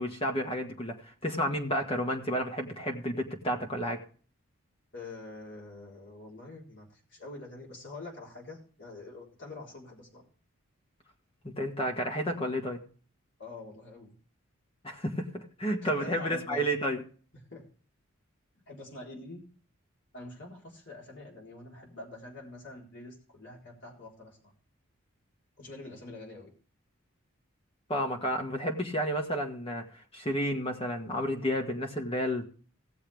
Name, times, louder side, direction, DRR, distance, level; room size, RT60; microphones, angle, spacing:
voice 1, 0.0-4.0 11.4-12.8 14.8-17.0 27.9-29.8 30.1-32.4, equal, 25° left, 2 dB, 1.7 m, -31 dB
voice 2, 4.9-10.2 13.4-14.1 15.8-16.7 17.5-17.6 18.7-19.4 20.1-24.5 25.6-26.5, left 2 dB, 55° left, -2 dB, 3.9 m, -45 dB
17.5 x 7.2 x 3.5 m, 0.41 s
head